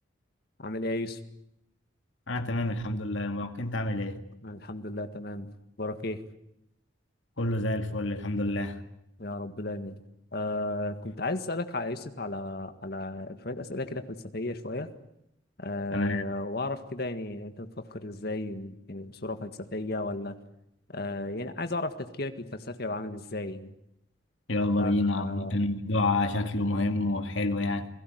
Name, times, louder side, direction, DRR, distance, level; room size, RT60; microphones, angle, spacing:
voice 1, 0.6-1.2 4.4-5.5 5.8-6.2 9.2-10.0 10.3-14.9 15.6-20.4 20.9-23.7 24.8-25.6, left 2 dB, 50° left, 1.8 m, -34 dB
voice 2, 2.3-4.2 7.4-8.8 15.9-16.2 24.5-27.9, left 2 dB, 70° left, 2.2 m, -28 dB
28.5 x 18.0 x 9.3 m
head